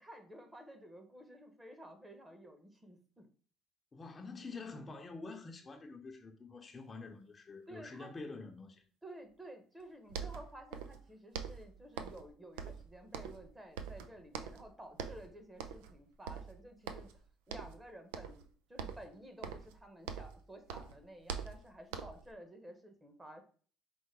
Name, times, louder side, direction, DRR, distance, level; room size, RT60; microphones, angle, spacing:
voice 1, 0.0-3.3 7.7-8.1 9.0-17.1 17.5-23.4, right 1 dB, 15° right, 1.1 m, -53 dB
voice 2, 3.9-8.8, left 3 dB, 30° left, 0.7 m, -47 dB
sound 1, 9.8-9.9 10.1-11.0 11.3-12.3 12.6-13.5 13.8-14.7 15.0-15.3 15.6-16.0 16.3-17.2 17.5-17.8 18.1-18.5 18.8-20.4 20.7-22.3, right 7 dB, 90° right, 0.4 m, -44 dB
4.6 x 2.1 x 4.6 m
supercardioid pair, 75°, 0 cm